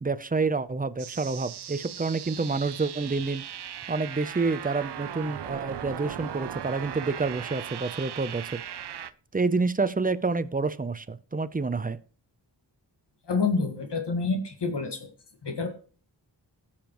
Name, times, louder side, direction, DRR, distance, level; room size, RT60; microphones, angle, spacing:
voice 1, 0.0-3.4 3.9-8.6 9.3-12.0, right 4 dB, 20° right, 0.6 m, -28 dB
sound 1, 1.0-9.1, right 10 dB, 70° right, 0.6 m, -38 dB
voice 2, 13.3-15.1 15.4-15.7, left 4 dB, 75° left, 1.8 m, -28 dB
18.5 x 7.3 x 3.0 m
wide cardioid pair, 75°, 42 cm